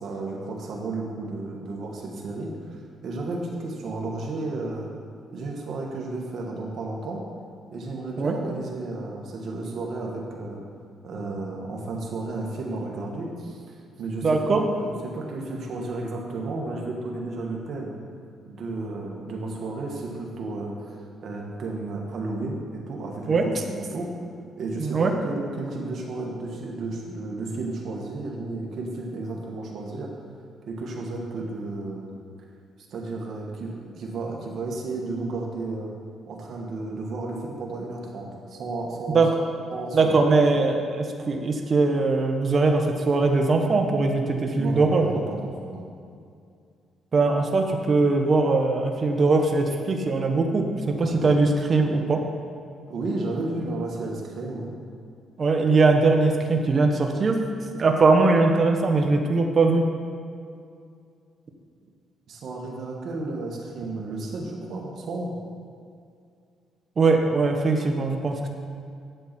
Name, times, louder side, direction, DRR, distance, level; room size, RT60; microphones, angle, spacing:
voice 1, 0.0-2.5 3.0-4.9 5.3-7.2 7.7-10.6 11.0-13.6 14.0-18.0 18.4-21.0 21.2-24.1 24.6-30.1 30.7-32.1 32.9-35.9 36.3-39.2 39.7-40.2 44.6-45.9 50.9-51.4 52.9-54.7 62.3-65.3, right 2 dB, 60° right, -1 dB, 2.1 m, -33 dB
voice 2, 14.2-14.6 23.3-23.4 24.8-25.1 39.1-39.3 39.9-45.0 47.1-50.7 51.0-52.2 55.4-57.3 57.8-59.8 67.0-68.5, right 3 dB, 40° right, 3 dB, 1.2 m, -21 dB
11.5 x 8.0 x 4.5 m, 2.3 s
cardioid pair, 90°, 0 cm